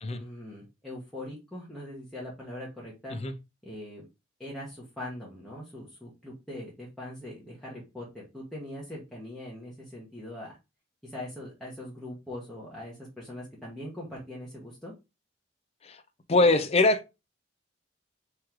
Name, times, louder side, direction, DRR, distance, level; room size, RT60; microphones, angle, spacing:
voice 1, 0.1-3.2 3.6-4.1 4.4-10.5 11.0-14.9, left 1 dB, ahead, 1.2 m, -41 dB
voice 2, 16.3-17.2, left 2 dB, 35° left, 0.5 m, -23 dB
3.7 x 3.2 x 4.5 m
head